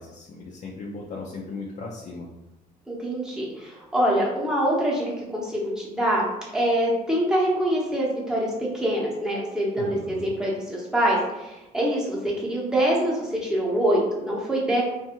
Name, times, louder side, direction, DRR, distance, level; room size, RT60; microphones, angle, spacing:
voice 1, 0.0-2.3 9.8-10.3, left 3 dB, 45° left, -3 dB, 0.4 m, -37 dB
voice 2, 2.9-14.8, right 1 dB, 5° right, -4 dB, 0.8 m, -25 dB
2.6 x 2.3 x 2.9 m, 0.96 s
cardioid pair, 110°, 17 cm